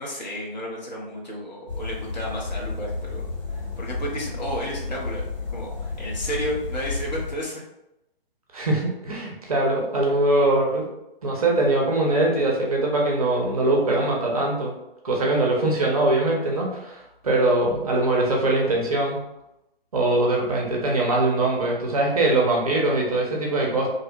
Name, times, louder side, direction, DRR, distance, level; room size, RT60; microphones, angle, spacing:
voice 1, 0.0-3.2 3.5-7.6, equal, 45° left, -3 dB, 0.7 m, -32 dB
sound 1, 1.7-7.3, left 3 dB, 65° left, 1.5 m, -32 dB
voice 2, 8.5-10.9 11.2-14.7 15.0-19.2 19.9-23.9, right 2 dB, 40° right, -2 dB, 0.5 m, -22 dB
2.6 x 2.0 x 2.7 m, 0.88 s
figure-of-eight pair, 135°, 30 cm